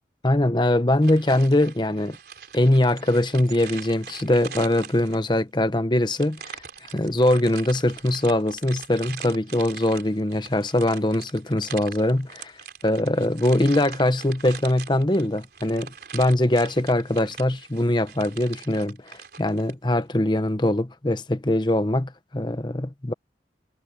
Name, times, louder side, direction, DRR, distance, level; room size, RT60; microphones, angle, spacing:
voice 1, 0.2-2.2 2.5-12.5 12.8-23.1, left 1 dB, 25° left, 1.0 m, -22 dB
sound 1, 1.0-5.4 6.1-19.7, right 7 dB, 60° right, 4.2 m, -42 dB
head